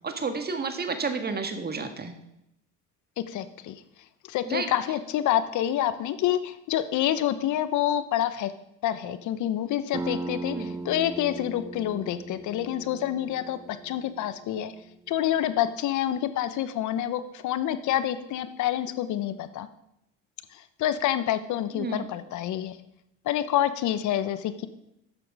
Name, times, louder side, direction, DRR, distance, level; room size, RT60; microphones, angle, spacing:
voice 1, 0.0-2.1 4.5-4.7 10.5-10.8 21.7-22.1, right 4 dB, 30° right, 7 dB, 1.6 m, -31 dB
voice 2, 3.2-3.8 4.2-8.5 8.8-14.7 15.1-19.7 20.5-22.8 23.2-24.7, left 11 dB, 60° left, 13 dB, 0.9 m, -27 dB
sound 1, 9.9-15.3, right 3 dB, 10° right, 0.3 m, -38 dB
11.0 x 6.9 x 4.8 m, 0.83 s
supercardioid pair, 80°, 34 cm